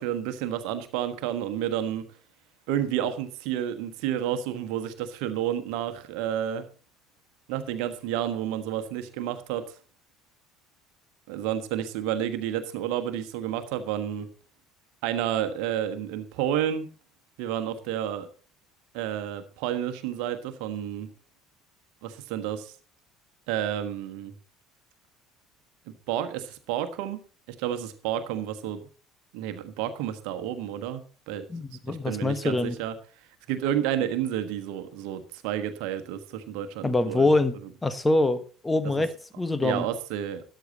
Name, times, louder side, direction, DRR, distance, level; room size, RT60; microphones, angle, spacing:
voice 1, 0.0-2.0 2.7-6.6 7.5-9.7 11.3-14.3 15.0-16.9 17.4-18.3 18.9-21.1 22.0-22.7 23.5-24.3 25.9-27.2 27.6-28.9 29.3-31.4 31.7-32.9 33.5-37.3 39.6-40.4, right 10 dB, 60° right, 9 dB, 1.4 m, -30 dB
voice 2, 31.5-32.8 36.8-37.6 37.8-39.9, left 2 dB, 15° left, 13 dB, 1.2 m, -25 dB
13.0 x 10.5 x 4.0 m, 0.39 s
figure-of-eight pair, 60°, 0 cm